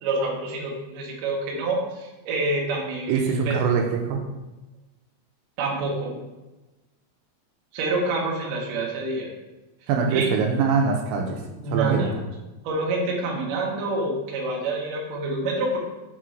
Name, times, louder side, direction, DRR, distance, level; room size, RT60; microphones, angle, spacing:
voice 1, 0.0-3.2 3.4-3.6 5.6-6.2 7.7-9.3 10.1-10.3 11.6-12.1 12.6-15.8, right 2 dB, 70° right, -2 dB, 2.2 m, -27 dB
voice 2, 3.1-4.2 9.9-11.4 11.7-12.1, right 5 dB, 85° right, 2 dB, 2.9 m, -23 dB
6.7 x 3.7 x 4.5 m, 1.1 s
omnidirectional pair, 5.4 m